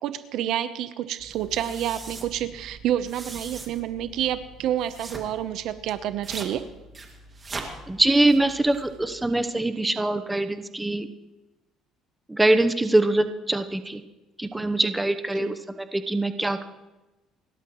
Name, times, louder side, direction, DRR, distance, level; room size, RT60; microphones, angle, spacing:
voice 1, 0.0-6.6 15.4-15.5, right 11 dB, 70° right, 12 dB, 0.9 m, -29 dB
sound 1, 1.2-9.3, right 3 dB, 25° right, 2.2 m, -41 dB
voice 2, 7.9-11.1 12.3-14.0 14.4-16.7, right 2 dB, 10° right, 8 dB, 0.9 m, -23 dB
30.0 x 12.5 x 3.1 m, 1.1 s
cardioid pair, 120°, 0 cm